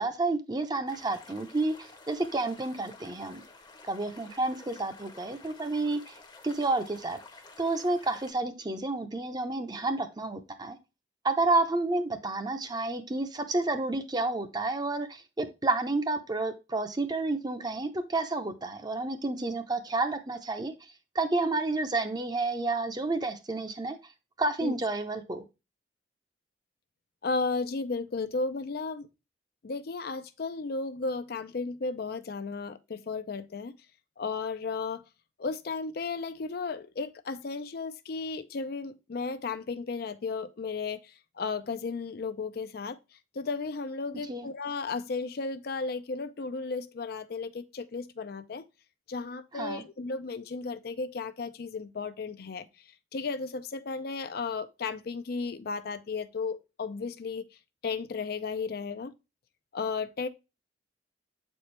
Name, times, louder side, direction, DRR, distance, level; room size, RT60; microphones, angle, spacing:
voice 1, 0.0-3.4 3.8-6.2 6.4-7.2 7.6-10.8 11.2-24.0 24.4-25.4 44.3-44.5 49.5-49.8, right 2 dB, 20° right, 0.6 m, -30 dB
sound 1, 0.9-8.3, left 3 dB, 25° left, 0.8 m, -52 dB
voice 2, 27.2-29.1 29.6-33.7 34.2-35.0 35.4-41.0 41.4-43.0 43.4-48.7 49.1-52.7 53.1-57.4 57.8-59.1 59.7-60.3, left 4 dB, 55° left, 0.5 m, -34 dB
7.5 x 4.4 x 3.2 m
head